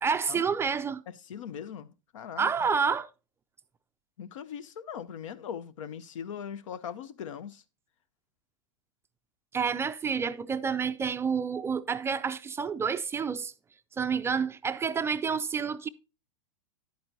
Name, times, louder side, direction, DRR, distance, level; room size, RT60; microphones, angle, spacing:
voice 1, 0.0-1.0 2.4-3.1 9.5-13.5 14.0-15.9, right 6 dB, 15° right, 0.4 m, -29 dB
voice 2, 1.2-2.5 4.2-7.6, left 8 dB, 75° left, 0.7 m, -40 dB
10.5 x 8.6 x 2.7 m
hypercardioid pair, 115°, 17 cm